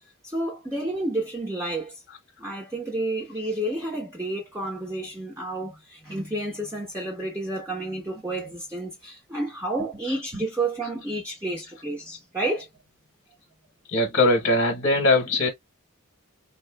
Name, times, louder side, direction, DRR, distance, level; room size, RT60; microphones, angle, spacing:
voice 1, 0.2-1.9 2.4-12.7, right 2 dB, 15° right, 1.0 m, -30 dB
voice 2, 13.9-15.5, left 2 dB, 50° left, 1.0 m, -21 dB
3.9 x 2.5 x 2.2 m
head